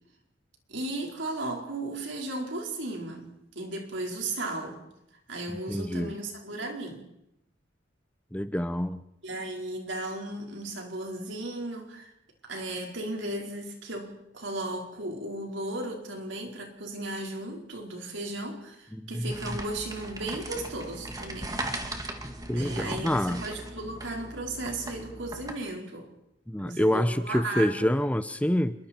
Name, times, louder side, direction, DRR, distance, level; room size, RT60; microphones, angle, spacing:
voice 1, 0.7-4.8 5.3-7.1 9.2-12.1 12.4-21.6 22.5-26.1 26.6-27.9, right 2 dB, 80° right, 4.7 m, -35 dB
voice 2, 5.7-6.1 8.3-9.0 18.9-19.3 22.5-23.4 26.5-28.7, equal, 10° left, 0.7 m, -27 dB
sound 1, 19.3-25.5, right 1 dB, 20° right, 2.1 m, -38 dB
28.0 x 22.5 x 4.5 m
head